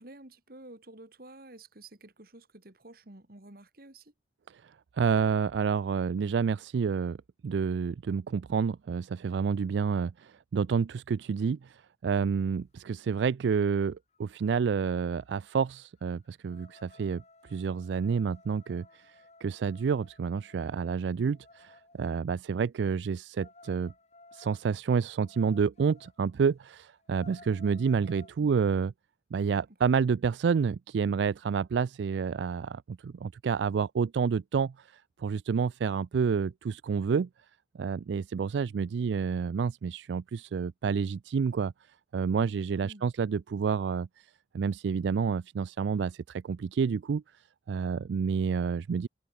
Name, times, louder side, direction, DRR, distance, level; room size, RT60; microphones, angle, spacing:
voice 1, 0.0-4.1 28.4-28.5 42.8-43.1, right 2 dB, 55° right, 2.4 m, -50 dB
voice 2, 5.0-7.2 7.4-19.2 19.4-23.9 24.3-28.9 29.3-34.9 35.2-37.3 37.8-41.7 42.1-44.1 44.5-47.2 47.7-49.1, right 6 dB, 80° right, 0.4 m, -29 dB
sound 1, 14.1-14.2 14.5-14.8 15.2-22.1 23.4-26.2 26.6-26.7 27.0-28.4, left 2 dB, 35° left, 6.7 m, -57 dB
head